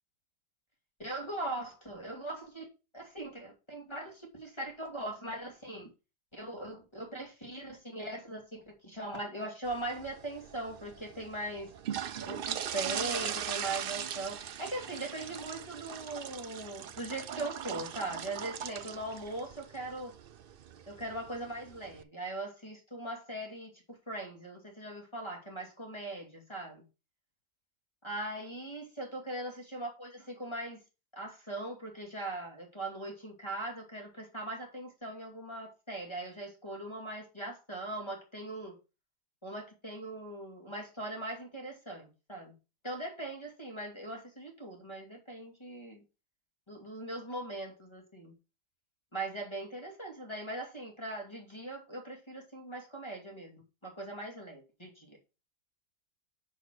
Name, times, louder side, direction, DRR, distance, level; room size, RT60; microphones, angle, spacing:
voice 1, 1.0-2.7 2.9-5.9 6.3-11.7 12.3-20.1 20.9-26.8 28.0-30.8 31.1-38.8 39.4-42.5 42.8-46.0 46.7-48.3 49.1-55.2, right 2 dB, 15° left, 2.7 m, -40 dB
sound 1, 9.6-22.0, right 9 dB, 80° right, 0.5 m, -40 dB
8.0 x 5.1 x 6.1 m
omnidirectional pair, 1.7 m